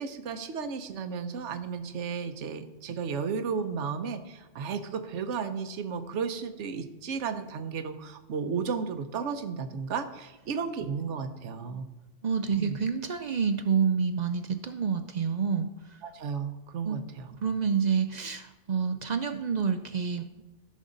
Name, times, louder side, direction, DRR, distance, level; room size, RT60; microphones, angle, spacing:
voice 1, 0.0-11.9 12.5-12.8 16.1-17.3, right 6 dB, 75° right, 8 dB, 1.1 m, -34 dB
voice 2, 11.3-11.8 12.2-16.0 16.8-17.0 17.4-20.4, right 6 dB, 55° right, 8 dB, 0.5 m, -28 dB
14.5 x 6.4 x 3.9 m, 1.1 s
omnidirectional pair, 1.2 m